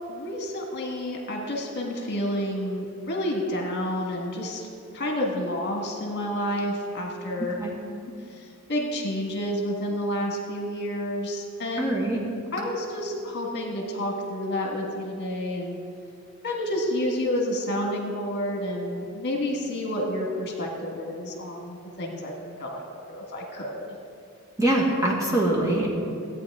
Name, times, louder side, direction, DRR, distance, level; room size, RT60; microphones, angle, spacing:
voice 1, 0.1-4.7 4.9-7.5 8.3-11.9 12.5-15.8 16.4-22.8 23.1-23.9, left 1 dB, 50° left, 0 dB, 1.5 m, -29 dB
voice 2, 7.4-7.7 11.8-12.2 24.6-25.9, right 1 dB, 15° right, -4 dB, 1.7 m, -24 dB
15.5 x 8.8 x 3.6 m, 2.6 s
head